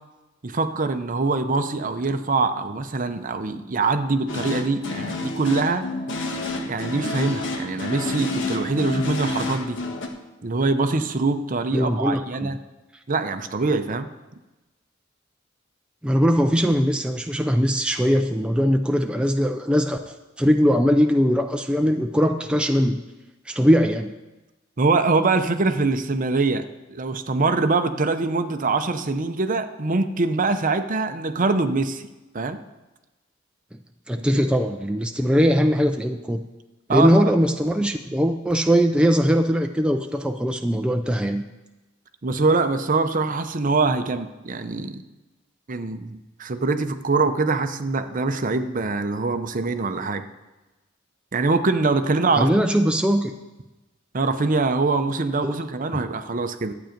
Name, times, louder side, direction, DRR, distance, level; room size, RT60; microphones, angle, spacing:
voice 1, 0.4-5.9 6.6-9.8 10.4-12.6 13.1-14.1 24.8-26.6 26.9-32.1 32.3-32.6 34.2-34.3 36.9-37.3 42.2-45.0 45.7-50.3 51.3-52.7 54.1-56.7, right 3 dB, 40° right, 9 dB, 0.7 m, -23 dB
sound 1, 4.3-10.1, left 2 dB, 65° left, 1.3 m, -29 dB
voice 2, 11.7-12.5 16.0-23.0 23.5-24.1 34.1-36.4 36.9-41.4 52.4-53.3 55.4-55.6, equal, 5° right, 4 dB, 0.4 m, -20 dB
12.0 x 8.9 x 5.2 m, 1.1 s
head